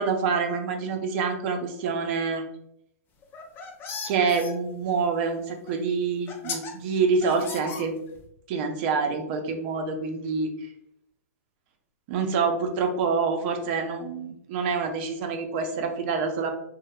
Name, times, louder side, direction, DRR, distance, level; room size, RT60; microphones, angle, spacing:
voice 1, 0.0-2.4 4.0-8.0 8.5-10.7 12.1-16.5, right 5 dB, 45° right, 5 dB, 0.4 m, -26 dB
sound 1, 3.2-4.5 5.7-5.8 6.3-6.7 7.2-8.3, left 5 dB, 25° left, 0.4 m, -36 dB
2.7 x 2.0 x 2.3 m, 0.77 s
hypercardioid pair, 125°, 9 cm